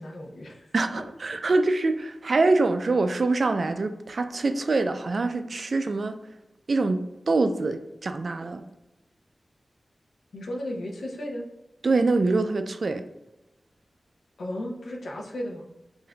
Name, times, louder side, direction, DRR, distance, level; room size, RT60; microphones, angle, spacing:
voice 1, 0.0-0.7 10.3-11.4 14.4-15.7, left 1 dB, 85° left, 0 dB, 0.7 m, -35 dB
voice 2, 0.7-6.2 6.7-8.6 11.8-13.0, right 3 dB, 60° right, 9 dB, 0.3 m, -24 dB
5.7 x 2.5 x 2.2 m, 0.98 s
wide cardioid pair, 90°, 0 cm